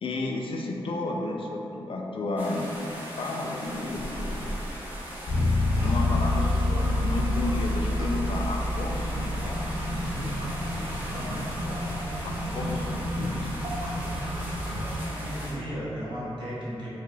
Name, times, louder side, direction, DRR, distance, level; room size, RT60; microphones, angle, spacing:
voice 1, 0.0-2.8 3.2-4.6 5.8-9.6 12.2-13.6, left 2 dB, 65° left, 0 dB, 0.4 m, -32 dB
sound 1, 2.4-15.5, equal, 20° right, 0.8 m, -39 dB
Bass guitar, 5.3-15.1, left 1 dB, 80° left, 1.2 m, -29 dB
sound 2, 5.7-15.0, equal, 75° right, 0.7 m, -34 dB
voice 2, 11.1-11.8 15.1-16.9, equal, 50° right, -10 dB, 1.2 m, -36 dB
3.7 x 3.2 x 2.3 m, 3.0 s
wide cardioid pair, 95°, 10 cm